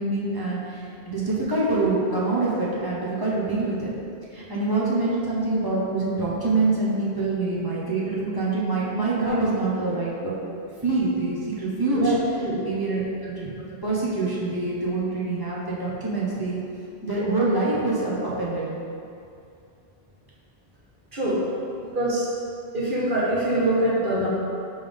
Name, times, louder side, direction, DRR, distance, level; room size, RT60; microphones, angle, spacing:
voice 1, 0.0-3.9 4.3-10.3 10.8-12.1 12.6-13.5 13.8-16.6 17.0-18.6, right 3 dB, 20° right, -7 dB, 1.1 m, -25 dB
voice 2, 11.9-12.6 21.1-21.4 21.9-22.3 22.7-24.3, right 1 dB, 50° right, -7 dB, 1.5 m, -24 dB
5.7 x 3.7 x 5.3 m, 2.5 s
omnidirectional pair, 1.1 m